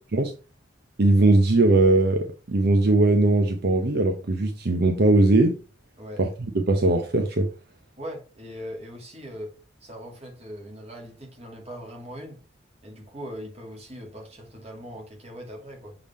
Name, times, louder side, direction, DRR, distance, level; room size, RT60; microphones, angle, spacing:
voice 1, 1.0-5.6 6.2-6.3 6.7-7.5, right 2 dB, 60° right, 0.7 m, -20 dB
voice 2, 8.0-9.5 9.8-12.4 12.8-16.0, equal, 35° right, 2.1 m, -40 dB
6.9 x 3.6 x 4.2 m
head